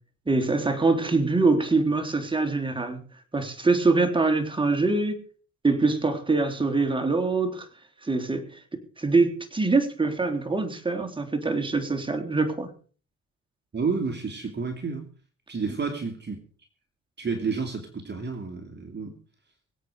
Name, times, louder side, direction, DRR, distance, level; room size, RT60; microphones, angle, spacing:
voice 1, 0.3-3.0 3.3-5.2 5.6-7.7 8.0-8.6 9.0-12.7, right 3 dB, 15° right, 5 dB, 3.5 m, -24 dB
voice 2, 13.7-15.1 15.5-16.4 17.2-19.2, right 4 dB, 35° right, 4 dB, 2.6 m, -30 dB
24.5 x 8.4 x 5.0 m, 0.41 s
cardioid pair, 90°, 30 cm